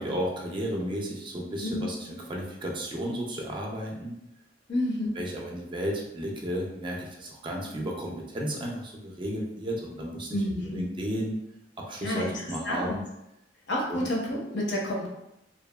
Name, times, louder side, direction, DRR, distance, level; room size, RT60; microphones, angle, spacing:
voice 1, 0.0-4.2 5.2-11.4 11.8-13.0 13.9-14.1, equal, 25° right, -1 dB, 0.4 m, -33 dB
voice 2, 1.6-1.9 4.7-5.2 10.3-10.9 12.0-12.9 13.7-15.1, left 1 dB, 60° left, -2 dB, 0.7 m, -30 dB
2.7 x 2.3 x 2.2 m, 0.88 s
head